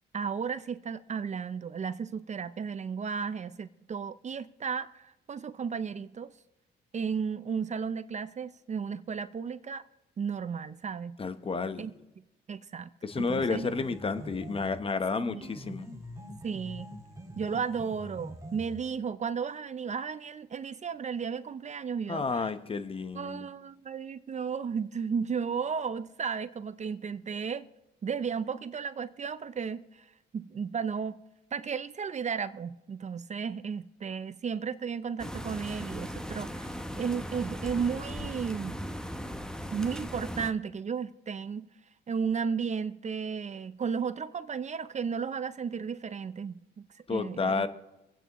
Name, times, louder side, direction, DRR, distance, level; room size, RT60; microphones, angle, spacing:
voice 1, 0.1-6.3 6.9-9.8 10.2-11.2 11.8-11.9 12.5-12.9 13.2-13.7 15.2-15.4 16.4-16.9 17.4-22.5 23.1-27.7 28.0-30.0 30.3-31.2 31.5-38.8 39.7-41.7 42.1-47.7, right 6 dB, 35° right, 0.5 m, -34 dB
voice 2, 11.2-11.9 13.0-15.8 22.1-23.5 47.1-47.7, left 4 dB, 30° left, 1.0 m, -31 dB
sound 1, 13.1-14.9 15.4-18.9, equal, 15° right, 1.9 m, -45 dB
sound 2, 35.2-40.5, equal, 5° left, 0.8 m, -38 dB
26.0 x 9.0 x 3.0 m
cardioid pair, 90°, 20 cm